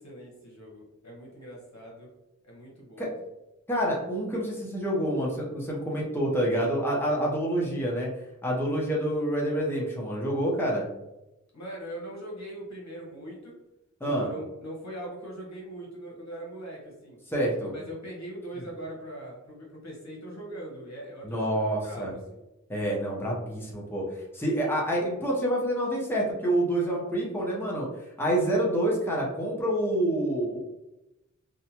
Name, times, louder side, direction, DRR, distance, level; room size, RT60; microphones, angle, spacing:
voice 1, 0.0-2.1 2.5-3.1 11.5-13.5 14.0-17.2 17.7-22.4, right 1 dB, 60° left, -3 dB, 1.1 m, -41 dB
voice 2, 3.7-8.1 8.4-10.9 14.0-14.3 17.3-17.7 21.2-22.1 22.7-27.9 28.2-30.6, right 1 dB, 5° left, -4 dB, 0.8 m, -27 dB
2.7 x 2.2 x 2.8 m, 0.94 s
wide cardioid pair, 50°, 31 cm